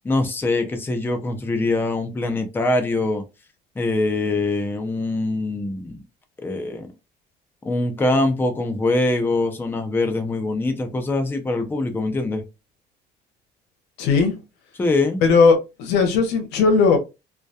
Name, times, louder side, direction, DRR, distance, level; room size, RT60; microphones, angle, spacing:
voice 1, 0.0-3.2 3.8-6.0 6.4-6.9 7.6-12.4 14.8-15.2, left 2 dB, 10° left, 0.5 m, -23 dB
voice 2, 14.0-14.3 15.2-17.0, left 4 dB, 85° left, 0.7 m, -17 dB
2.2 x 2.1 x 2.6 m
cardioid pair, 110°, 17 cm